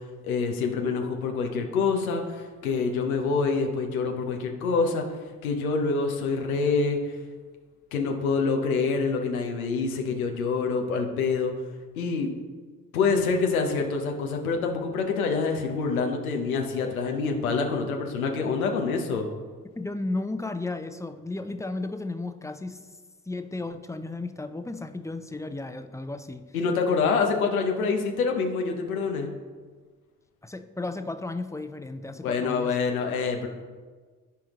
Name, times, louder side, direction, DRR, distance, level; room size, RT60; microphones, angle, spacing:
voice 1, 0.2-5.0 5.4-7.0 7.9-11.5 12.0-12.3 12.9-19.3 26.5-29.3 32.2-33.5, left 4 dB, 90° left, 3 dB, 0.9 m, -26 dB
voice 2, 19.8-22.8 23.3-26.4 30.4-32.7, left 2 dB, 5° left, 8 dB, 0.7 m, -34 dB
14.5 x 4.9 x 3.0 m, 1.4 s
hypercardioid pair, 45°, 41 cm